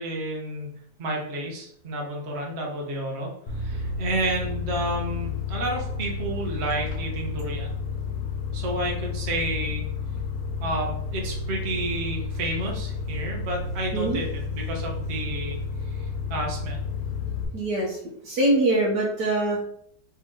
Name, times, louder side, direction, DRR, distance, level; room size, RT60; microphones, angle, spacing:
voice 1, 0.0-7.7 8.5-9.9 10.6-15.6 15.9-16.8, right 1 dB, 45° right, 0 dB, 1.2 m, -31 dB
sound 1, 3.5-17.4, left 4 dB, 55° left, 1.2 m, -31 dB
voice 2, 17.5-18.0 18.2-19.6, right 1 dB, 70° right, -6 dB, 1.6 m, -23 dB
4.3 x 3.2 x 3.7 m, 0.67 s
omnidirectional pair, 1.8 m